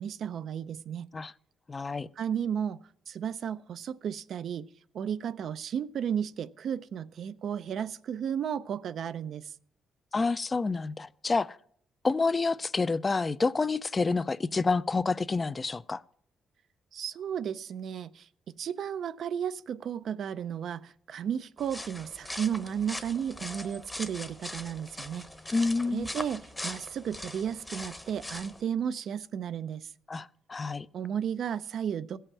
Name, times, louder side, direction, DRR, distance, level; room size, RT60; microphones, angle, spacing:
voice 1, 0.0-1.1 2.2-2.8 3.1-4.7 4.9-9.5 16.9-18.3 18.6-25.3 25.9-29.9 30.9-32.2, right 8 dB, 65° right, 0.4 m, -33 dB
voice 2, 1.7-2.1 10.1-11.6 12.0-16.0 25.5-26.1 30.1-30.9, left 4 dB, 30° left, 0.4 m, -28 dB
sound 1, 21.6-28.6, left 1 dB, 10° left, 0.9 m, -41 dB
16.0 x 5.6 x 7.2 m
cardioid pair, 90°, 0 cm